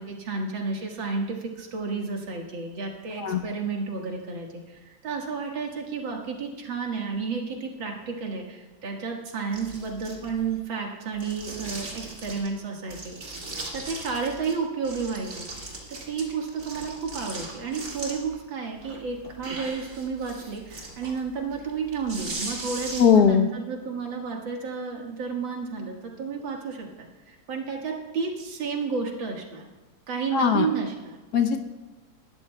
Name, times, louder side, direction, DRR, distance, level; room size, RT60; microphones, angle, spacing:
voice 1, 0.0-13.1 13.7-15.5 15.9-29.6 30.1-31.2, right 5 dB, 75° right, 1 dB, 2.3 m, -31 dB
sound 1, 9.5-10.6 11.2-12.5 12.9-14.5 14.8-18.4 18.8-23.3, right 2 dB, 40° right, 2.4 m, -39 dB
voice 2, 23.0-23.5 30.3-30.7 31.3-31.7, left 7 dB, 60° left, 6 dB, 1.2 m, -19 dB
19.5 x 12.5 x 2.2 m, 1.2 s
omnidirectional pair, 2.1 m